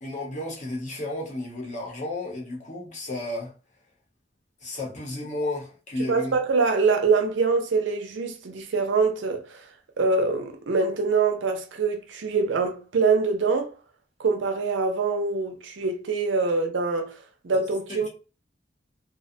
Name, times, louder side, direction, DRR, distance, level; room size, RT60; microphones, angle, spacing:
voice 1, 0.0-3.5 4.6-6.4 17.9-18.1, left 1 dB, 40° left, 0.8 m, -33 dB
voice 2, 6.1-9.6 10.0-13.7 14.2-17.2 17.4-18.1, right 4 dB, 70° right, 0.5 m, -24 dB
2.5 x 2.1 x 2.5 m
head